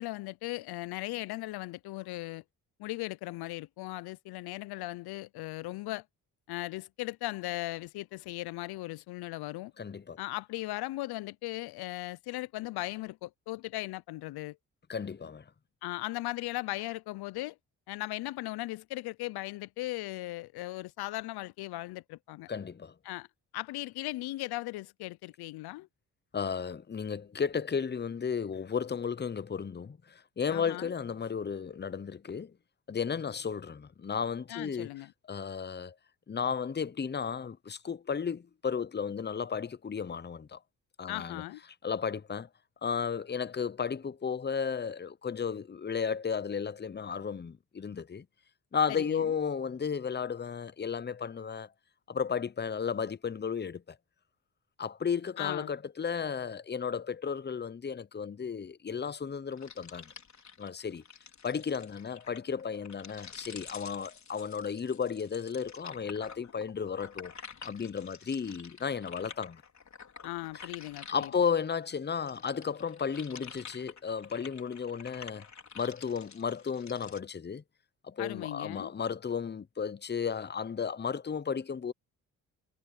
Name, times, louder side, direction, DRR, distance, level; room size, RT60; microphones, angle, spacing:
voice 1, 0.0-2.4 2.8-6.0 6.5-9.7 10.2-14.6 15.8-17.6 17.9-22.5 23.0-23.3 23.5-25.9 30.5-30.9 34.5-35.1 41.1-41.6 48.9-49.4 55.4-55.7 70.2-71.3 78.2-78.9, left 18 dB, 75° left, 0.8 m, -38 dB
voice 2, 9.8-10.2 14.9-15.4 22.5-22.9 26.3-32.5 32.9-34.9 35.3-35.9 36.3-40.6 41.0-41.4 41.8-42.5 42.8-48.2 48.7-51.7 52.1-54.0 54.8-60.1 60.6-61.0 61.4-67.3 67.6-69.6 71.1-75.5 75.7-77.6 78.0-81.9, left 6 dB, 25° left, 0.9 m, -34 dB
sound 1, 59.5-71.7 72.1-77.2, left 6 dB, 45° left, 4.5 m, -49 dB
supercardioid pair, 55°, 38 cm